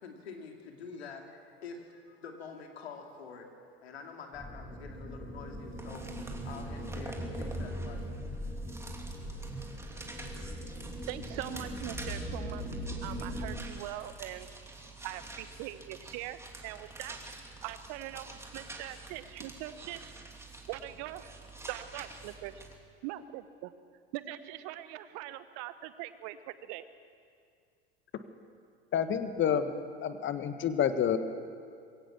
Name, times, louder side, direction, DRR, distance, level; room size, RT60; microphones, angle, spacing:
voice 1, 0.0-3.5 3.8-8.7, left 5 dB, 75° left, 3 dB, 2.6 m, -47 dB
sound 1, 4.3-13.6, equal, 15° left, 4.8 m, -40 dB
sound 2, 5.5-22.7, right 2 dB, 10° right, 2.8 m, -47 dB
voice 2, 11.1-14.5 15.0-17.2 17.6-20.1 20.7-21.3 21.7-22.6 23.0-23.7 24.1-26.8, right 14 dB, 55° right, 13 dB, 1.1 m, -42 dB
voice 3, 28.9-29.7 30.0-31.2, left 8 dB, 40° left, 10 dB, 1.6 m, -28 dB
22.5 x 17.0 x 7.2 m, 2.3 s
figure-of-eight pair, 70°, 31 cm